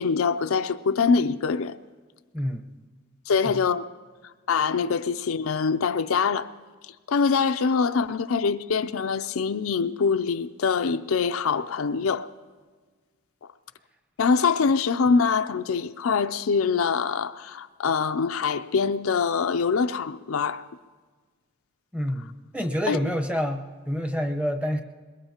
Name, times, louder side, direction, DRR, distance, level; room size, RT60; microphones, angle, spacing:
voice 1, 0.0-1.8 3.3-3.8 4.5-6.5 7.1-12.3 14.2-20.6 22.9-23.0, left 5 dB, 65° left, 0.5 m, -24 dB
voice 2, 2.3-2.7 3.4-3.6 21.9-24.8, equal, 5° right, 0.9 m, -28 dB
23.0 x 21.5 x 2.9 m
head